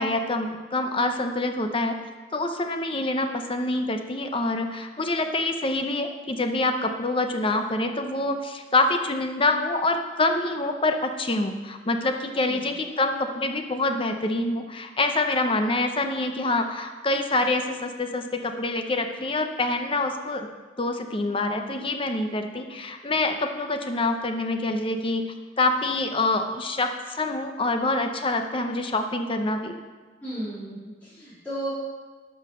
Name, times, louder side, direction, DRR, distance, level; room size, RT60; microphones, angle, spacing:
voice 1, 0.0-2.0 2.3-20.5 20.8-29.7, left 2 dB, 30° left, 6 dB, 0.8 m, -26 dB
voice 2, 12.3-12.6 30.2-31.7, right 1 dB, 10° left, -13 dB, 2.6 m, -34 dB
11.5 x 5.7 x 6.4 m, 1.3 s
head